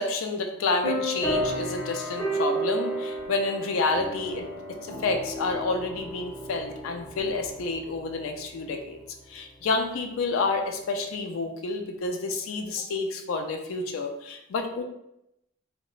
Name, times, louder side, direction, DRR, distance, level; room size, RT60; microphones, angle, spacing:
voice 1, 0.0-4.5 4.8-9.0 9.3-14.8, left 3 dB, 85° left, 4 dB, 0.4 m, -29 dB
sound 1, 0.8-8.9, right 1 dB, 20° left, 0.7 m, -32 dB
2.9 x 2.1 x 2.3 m, 0.83 s
head